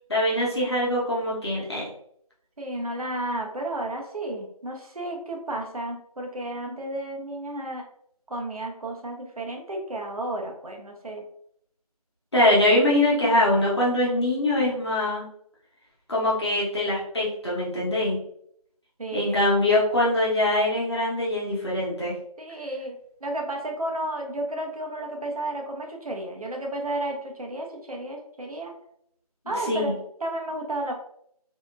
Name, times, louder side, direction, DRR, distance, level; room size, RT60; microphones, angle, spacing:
voice 1, 0.1-1.8 12.3-15.2 16.1-18.2 19.1-22.1 29.7-29.9, left 1 dB, 45° left, -5 dB, 1.0 m, -23 dB
voice 2, 2.6-7.8 8.3-11.2 19.0-19.4 22.4-28.7 29.5-29.9 30.2-30.9, right 1 dB, 65° right, 1 dB, 0.7 m, -32 dB
2.8 x 2.3 x 2.3 m, 0.68 s
figure-of-eight pair, 180°, 20 cm